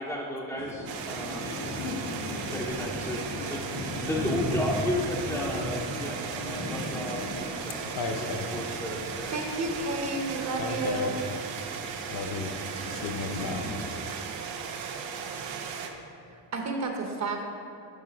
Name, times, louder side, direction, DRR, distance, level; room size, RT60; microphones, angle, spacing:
voice 1, 0.0-1.5 2.5-8.3 8.5-9.3, left 1 dB, 5° left, -6 dB, 0.5 m, -34 dB
sound 1, 0.6-13.9, left 2 dB, 75° left, 1.7 m, -37 dB
sound 2, 0.9-15.9, right 6 dB, 85° right, 0.8 m, -37 dB
voice 2, 8.0-8.5 10.6-11.2 12.1-12.6 12.9-13.7, left 4 dB, 55° left, 5 dB, 0.8 m, -33 dB
voice 3, 9.3-11.1 16.3-17.4, right 2 dB, 35° right, 3 dB, 0.8 m, -31 dB
11.0 x 3.6 x 5.1 m, 2.6 s
cardioid pair, 155°, 45 cm